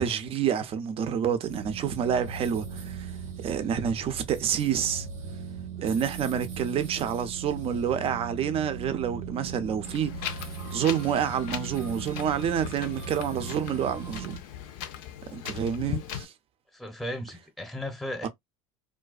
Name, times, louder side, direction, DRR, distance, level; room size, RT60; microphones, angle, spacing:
voice 1, 0.0-3.1 3.4-5.1 5.8-10.4 10.7-14.4 15.3-16.3 18.2-18.3, right 8 dB, 35° right, 0.5 m, -28 dB
sound 1, 1.5-14.4, right 6 dB, 85° right, 0.9 m, -38 dB
Wind, 9.8-16.2, left 10 dB, 60° left, 0.5 m, -39 dB
voice 2, 16.7-18.3, left 1 dB, ahead, 0.8 m, -35 dB
2.4 x 2.2 x 2.3 m
hypercardioid pair, 90°, 16 cm